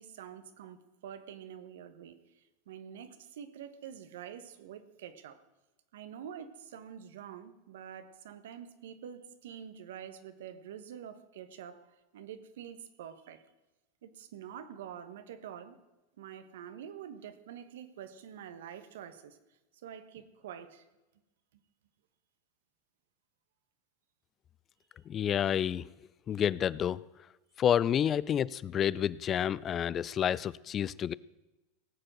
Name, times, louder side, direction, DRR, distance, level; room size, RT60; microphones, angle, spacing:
voice 1, 0.0-5.4 5.9-13.4 14.0-15.8 16.2-19.4 19.8-20.8, right 9 dB, 75° right, 11 dB, 1.3 m, -47 dB
voice 2, 25.1-25.8 26.3-27.0 27.6-31.1, left 9 dB, 30° left, 21 dB, 0.3 m, -29 dB
18.5 x 7.7 x 6.2 m, 1.0 s
hypercardioid pair, 115°, 0 cm